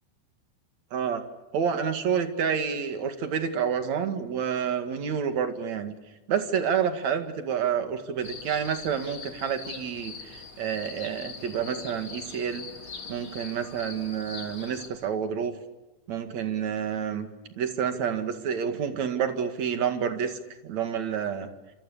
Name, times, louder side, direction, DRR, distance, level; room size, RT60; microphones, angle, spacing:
voice 1, 0.9-1.2 1.5-5.9 6.3-12.7 13.1-15.5 16.1-17.3 17.6-21.5, right 7 dB, 55° right, 8 dB, 3.2 m, -29 dB
sound 1, 8.2-14.9, left 5 dB, 40° left, 4.0 m, -42 dB
28.5 x 27.5 x 6.9 m, 1.0 s
omnidirectional pair, 4.0 m